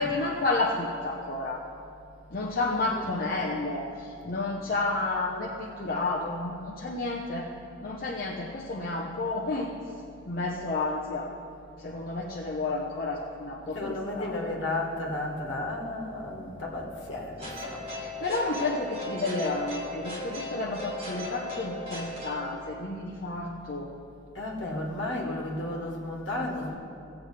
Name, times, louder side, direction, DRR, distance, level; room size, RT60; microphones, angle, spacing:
voice 1, 0.0-1.6 2.3-7.5 7.8-9.7 10.3-11.3 11.8-14.5 17.9-23.9, left 2 dB, 50° left, -3 dB, 0.8 m, -31 dB
voice 2, 2.6-3.2 13.7-17.8 24.3-26.8, left 2 dB, 65° left, -1 dB, 1.8 m, -33 dB
sound 1, 17.4-22.6, left 1 dB, 30° right, 1.9 m, -37 dB
17.0 x 8.1 x 3.3 m, 2.6 s
head